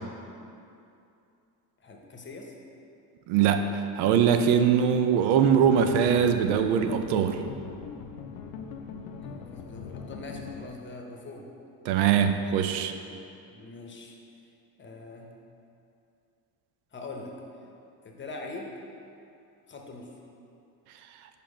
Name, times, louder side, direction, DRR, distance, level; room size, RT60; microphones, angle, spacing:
voice 1, 1.8-2.5 9.2-11.5 13.1-14.1 14.8-15.4 16.9-17.3 18.0-18.7 19.7-20.1, left 3 dB, 30° left, 1 dB, 0.9 m, -42 dB
voice 2, 3.3-7.4 11.9-12.9, right 8 dB, 90° right, 8 dB, 0.5 m, -22 dB
sound 1, 5.5-10.7, left 6 dB, 85° left, 0.5 m, -41 dB
5.1 x 4.5 x 5.0 m, 2.6 s
cardioid pair, 100°, 40 cm